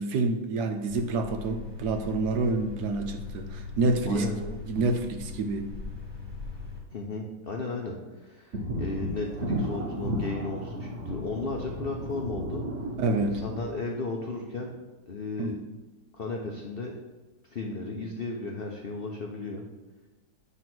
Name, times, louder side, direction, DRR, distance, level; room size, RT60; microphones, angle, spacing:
voice 1, 0.0-5.7 13.0-13.4 15.4-15.8, right 3 dB, 70° right, 7 dB, 1.0 m, -28 dB
sound 1, 0.9-6.8, left 4 dB, 15° right, 1.3 m, -40 dB
voice 2, 6.9-12.6 13.2-14.7 15.1-15.6 16.1-16.9 17.5-19.6, left 3 dB, 75° left, 1 dB, 0.5 m, -35 dB
sound 2, 8.5-13.6, equal, 55° right, 1.0 m, -33 dB
9.3 x 3.4 x 6.0 m, 1.1 s
omnidirectional pair, 2.0 m